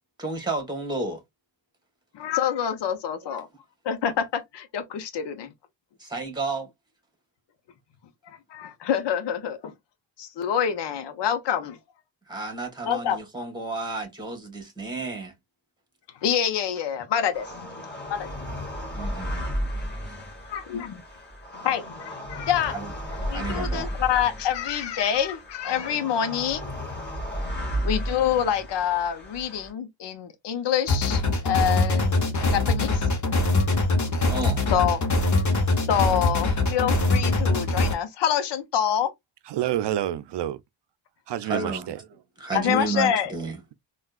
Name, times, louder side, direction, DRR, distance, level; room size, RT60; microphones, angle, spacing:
voice 1, 0.2-1.2 6.0-6.7 12.3-15.3 18.9-19.5 22.7-22.9 23.3-23.9 34.3-34.6 41.4-41.9 42.4-43.6, right 3 dB, 10° right, 1.8 m, -31 dB
voice 2, 2.1-3.5 3.8-5.5 8.5-9.7 10.2-11.8 12.8-13.2 16.2-17.5 18.1-18.3 20.5-21.0 21.6-22.7 23.3-26.7 27.8-33.1 34.7-35.0 35.9-39.1 42.5-43.3, left 9 dB, 60° left, 0.9 m, -26 dB
sound 1, 17.3-29.7, equal, 20° left, 1.4 m, -34 dB
sound 2, 30.9-37.9, left 2 dB, 35° left, 1.1 m, -23 dB
voice 3, 39.5-40.6 41.3-42.0, right 12 dB, 60° right, 0.6 m, -28 dB
3.5 x 2.5 x 2.4 m
cardioid pair, 70°, 47 cm